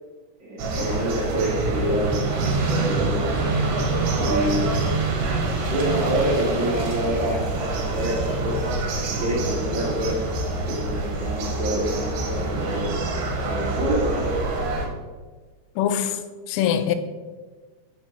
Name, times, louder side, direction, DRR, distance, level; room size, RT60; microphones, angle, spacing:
voice 1, 0.4-2.6 2.8-3.5 4.2-4.9 5.6-12.9 13.4-14.3, right 1 dB, 45° right, -7 dB, 1.0 m, -27 dB
sound 1, 0.6-14.9, right 3 dB, 75° right, 2.7 m, -26 dB
voice 2, 15.8-16.2 16.5-17.0, left 9 dB, 90° left, 9 dB, 2.8 m, -22 dB
5.4 x 5.0 x 4.3 m, 1.3 s
omnidirectional pair, 4.9 m